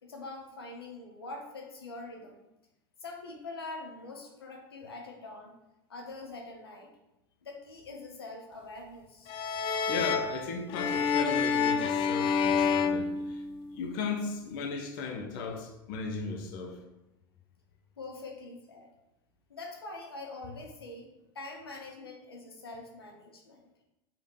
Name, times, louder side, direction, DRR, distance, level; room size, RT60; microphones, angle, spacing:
voice 1, 0.0-2.4 3.0-5.6 5.9-6.9 7.4-9.3 18.0-18.9 19.5-21.1 21.3-23.7, left 2 dB, 80° left, 1.2 m, -44 dB
sound 1, 9.3-13.9, left 6 dB, 45° left, 0.7 m, -28 dB
voice 2, 9.9-13.4 13.7-16.8, left 4 dB, 60° left, 1.2 m, -36 dB
5.3 x 4.9 x 5.4 m
figure-of-eight pair, 80°, 12 cm